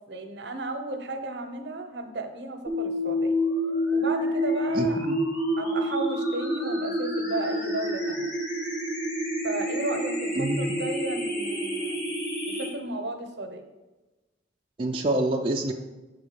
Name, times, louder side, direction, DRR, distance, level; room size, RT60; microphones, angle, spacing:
voice 1, 0.1-3.4 3.9-5.1 5.6-8.3 9.4-12.0 12.5-13.7, right 2 dB, 70° right, 6 dB, 0.7 m, -34 dB
sound 1, 2.7-12.7, equal, 60° left, 1.8 m, -28 dB
voice 2, 4.7-5.2 10.4-10.8 14.8-15.7, right 2 dB, 30° right, -1 dB, 0.4 m, -27 dB
6.0 x 3.6 x 5.1 m, 1.1 s
head